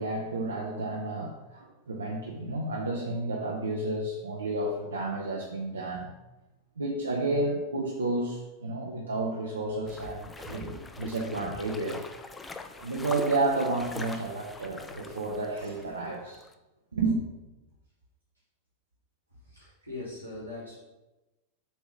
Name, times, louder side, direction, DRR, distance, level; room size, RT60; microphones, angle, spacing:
voice 1, 0.0-6.1 6.8-12.0 12.8-16.5 16.9-17.2, right 2 dB, 75° right, -1 dB, 0.8 m, -31 dB
sound 1, 9.9-16.1 16.3-16.5, left 3 dB, 15° left, 0.5 m, -43 dB
voice 2, 19.4-20.8, left 2 dB, 90° left, -8 dB, 1.5 m, -41 dB
7.4 x 3.1 x 5.1 m, 1.1 s
figure-of-eight pair, 90°, 0 cm